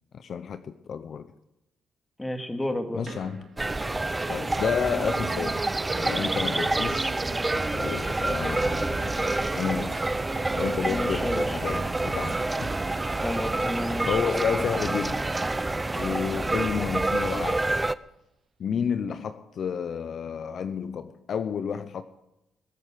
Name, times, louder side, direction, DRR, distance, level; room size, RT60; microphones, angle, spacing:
voice 1, 0.1-1.3 2.9-3.5 4.3-5.6 6.0-7.1 7.7-10.0 10.5-12.4 14.1-15.2 16.0-17.8 18.6-22.0, left 7 dB, 55° left, 0.9 m, -31 dB
voice 2, 2.2-3.0 10.9-11.6 13.2-14.2, left 1 dB, 15° left, 2.4 m, -31 dB
sound 1, 3.1-17.6, right 4 dB, 45° right, 2.8 m, -40 dB
sound 2, 3.6-18.0, right 2 dB, 15° right, 0.6 m, -28 dB
21.0 x 8.7 x 7.9 m
cardioid pair, 90°, 0 cm